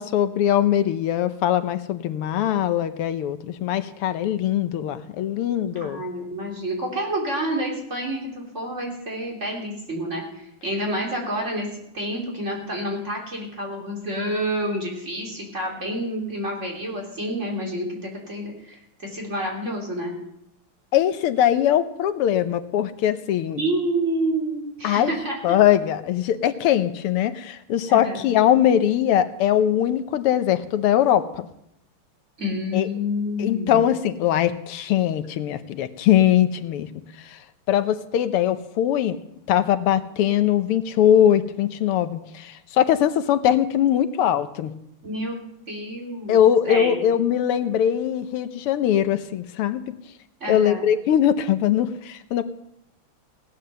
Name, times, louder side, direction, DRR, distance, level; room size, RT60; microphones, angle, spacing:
voice 1, 0.0-6.0 20.9-23.6 24.8-25.1 25.4-31.4 32.7-32.9 33.4-36.9 37.2-37.4 37.7-39.2 39.5-44.7 46.3-50.0 50.5-52.4, left 10 dB, 85° left, 11 dB, 1.8 m, -21 dB
voice 2, 5.8-20.2 23.6-25.6 27.9-28.3 32.4-33.8 45.0-45.4 45.7-46.4 46.6-47.0 50.4-50.9, equal, 30° right, -1 dB, 3.7 m, -28 dB
17.5 x 9.5 x 6.7 m, 0.77 s
omnidirectional pair, 2.4 m